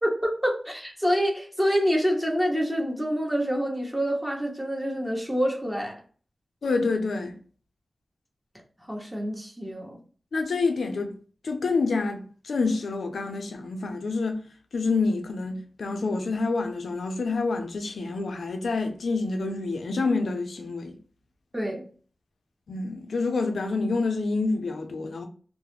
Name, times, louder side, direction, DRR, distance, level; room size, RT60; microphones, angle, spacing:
voice 1, 0.0-6.0 8.9-10.0 21.5-21.8, equal, 10° right, 0.9 m, -27 dB
voice 2, 6.6-7.3 10.3-11.1 11.4-14.4 14.7-21.0 22.7-25.3, left 3 dB, 85° left, 0.4 m, -27 dB
2.3 x 2.0 x 3.0 m
cardioid pair, 45°, 0 cm